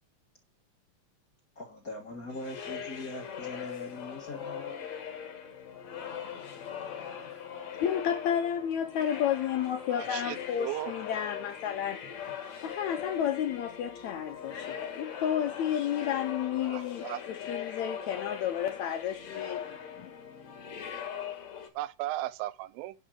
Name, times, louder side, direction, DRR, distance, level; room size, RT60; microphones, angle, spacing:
voice 1, 1.5-4.9 5.9-7.3 19.6-19.8, left 2 dB, 40° left, 1.3 m, -43 dB
sound 1, 2.3-21.7, left 8 dB, 55° left, 2.7 m, -40 dB
voice 2, 7.8-12.1 12.6-19.6 20.0-20.1, left 9 dB, 75° left, 1.8 m, -31 dB
voice 3, 9.9-10.9 16.6-17.2 21.8-22.9, right 16 dB, 85° right, 2.5 m, -36 dB
11.0 x 5.3 x 6.3 m
omnidirectional pair, 4.1 m